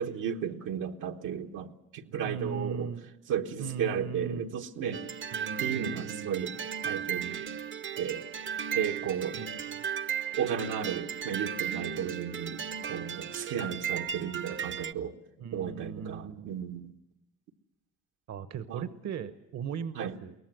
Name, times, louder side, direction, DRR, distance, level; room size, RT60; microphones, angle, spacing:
voice 1, 0.0-2.9 3.3-5.0 5.6-6.5 6.8-7.4 7.9-8.3 8.7-9.4 10.4-15.2 15.5-16.9 18.7-18.8 19.9-20.2, right 8 dB, 90° right, 3 dB, 1.3 m, -34 dB
voice 2, 2.2-3.1 3.6-4.5 5.3-6.5 9.4-9.8 15.4-16.5 18.3-20.3, right 6 dB, 60° right, 12 dB, 1.0 m, -38 dB
sound 1, 4.9-14.9, right 8 dB, 40° right, 0.7 m, -35 dB
22.5 x 18.5 x 7.7 m, 0.91 s
cardioid pair, 90°, 30 cm